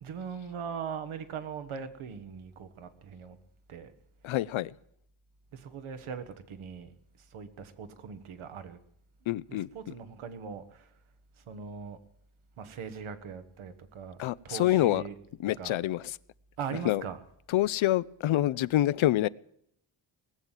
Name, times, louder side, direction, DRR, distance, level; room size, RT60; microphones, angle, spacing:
voice 1, 0.0-3.4 3.7-3.9 5.5-8.8 9.5-10.9 11.4-12.0 12.6-15.2 15.6-15.8 16.6-17.2, right 6 dB, 80° right, 1.4 m, -40 dB
voice 2, 4.2-4.7 9.3-9.7 14.2-15.0 15.4-16.2 16.8-17.0 17.5-19.3, left 14 dB, 75° left, 0.6 m, -26 dB
19.5 x 7.4 x 9.0 m
cardioid pair, 60°, 48 cm